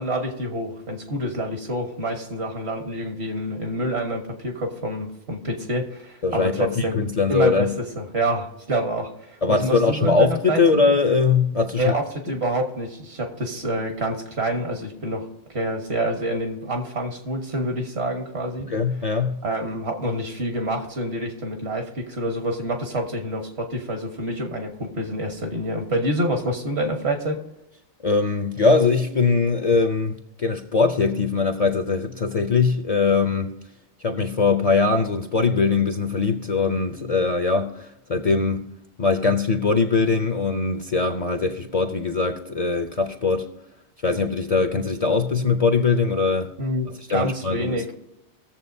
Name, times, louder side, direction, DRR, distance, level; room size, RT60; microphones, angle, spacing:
voice 1, 0.0-7.0 7.3-10.6 11.7-18.7 19.4-27.4 46.6-47.9, right 1 dB, 70° right, 1.6 m, -27 dB
voice 2, 6.2-7.8 9.4-12.0 18.6-19.4 28.0-33.5 34.0-38.7 39.0-43.5 44.0-46.5 47.1-47.9, left 4 dB, 45° left, 0.6 m, -21 dB
20.0 x 7.2 x 2.7 m
omnidirectional pair, 1.2 m